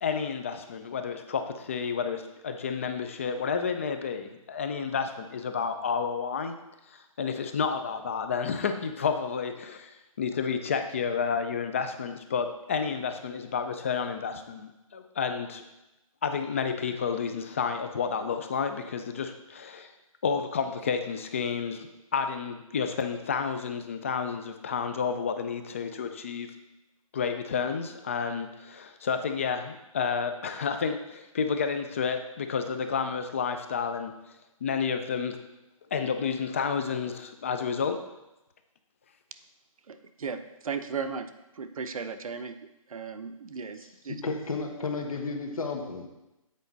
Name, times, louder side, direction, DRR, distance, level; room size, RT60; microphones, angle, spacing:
voice 1, 0.0-6.5 6.9-15.6 16.2-19.9 20.2-26.5 27.1-34.1 34.6-35.4 35.9-38.0, left 6 dB, 25° left, 8 dB, 0.4 m, -30 dB
voice 2, 39.9-41.3 41.6-42.6 42.9-44.2, right 5 dB, 75° right, 9 dB, 0.7 m, -36 dB
voice 3, 43.8-46.1, left 4 dB, 75° left, 3 dB, 1.4 m, -33 dB
8.3 x 4.9 x 4.0 m, 0.95 s
hypercardioid pair, 165°, 18 cm